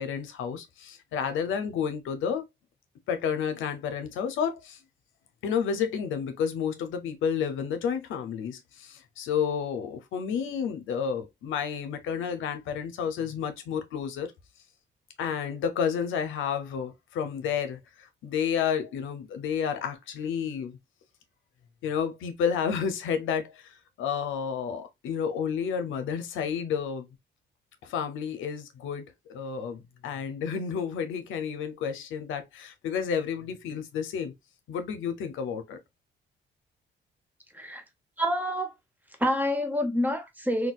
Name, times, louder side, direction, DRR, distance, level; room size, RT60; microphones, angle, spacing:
voice 1, 0.0-2.4 3.1-4.8 5.4-14.3 15.2-20.7 21.8-27.0 27.8-34.3 34.7-35.8, left 7 dB, 80° left, 0.6 m, -31 dB
voice 2, 38.2-38.7 39.2-40.7, equal, 10° right, 0.7 m, -27 dB
3.7 x 2.3 x 2.3 m
cardioid pair, 90°, 20 cm